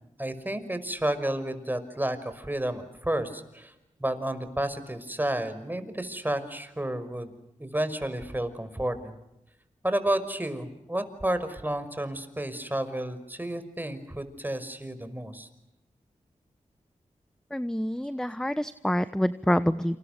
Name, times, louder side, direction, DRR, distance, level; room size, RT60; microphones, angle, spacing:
voice 1, 0.2-3.7 4.0-7.3 7.6-9.2 9.8-15.5, right 1 dB, 15° right, 10 dB, 5.5 m, -31 dB
voice 2, 17.5-20.0, equal, 5° left, 13 dB, 1.1 m, -27 dB
29.0 x 28.0 x 6.8 m, 0.91 s
cardioid pair, 50°, 13 cm